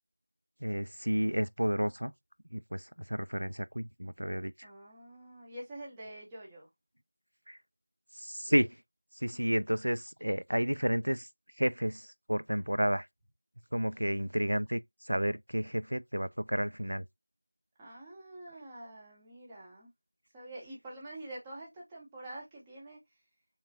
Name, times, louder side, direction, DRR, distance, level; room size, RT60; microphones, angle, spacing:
voice 1, 0.6-2.1 2.5-4.7 7.5-7.6 8.2-8.7 9.2-11.3 11.6-13.1 13.7-14.8 15.1-17.0, equal, 85° right, 0.3 m, -31 dB
voice 2, 4.6-6.7 17.8-19.9 20.3-23.0, right 1 dB, 5° right, 0.5 m, -46 dB
3.6 x 3.0 x 2.6 m
figure-of-eight pair, 175°, 0 cm